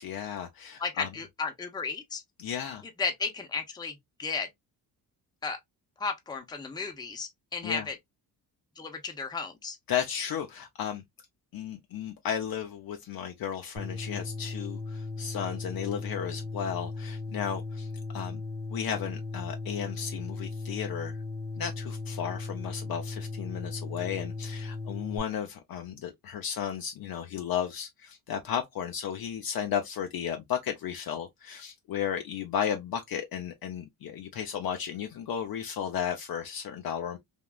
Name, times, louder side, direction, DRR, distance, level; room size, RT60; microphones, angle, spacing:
voice 1, 0.0-1.1 2.4-2.8 7.6-7.8 9.9-11.0 11.5-17.9 18.1-18.4 18.7-21.2 21.6-37.2, left 8 dB, 60° left, 0.6 m, -34 dB
voice 2, 0.8-2.2 3.0-4.5 5.4-5.6 6.0-8.0 8.8-9.8, left 4 dB, 10° left, 0.6 m, -34 dB
sound 1, 13.8-25.2, left 3 dB, 35° right, 1.0 m, -37 dB
3.5 x 2.3 x 2.3 m
cardioid pair, 95°, 41 cm